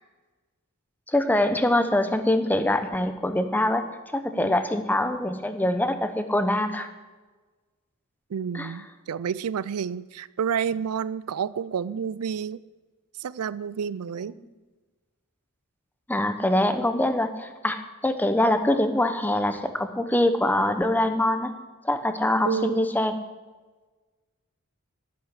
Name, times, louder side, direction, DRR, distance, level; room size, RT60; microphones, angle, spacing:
voice 1, 1.1-3.8 4.1-6.9 8.5-8.7 16.1-21.5 21.8-23.1, left 1 dB, 10° left, 8 dB, 0.9 m, -24 dB
voice 2, 8.3-12.6 13.2-14.3 22.4-22.9, right 7 dB, 80° right, 19 dB, 0.4 m, -30 dB
11.0 x 8.0 x 10.0 m, 1.3 s
head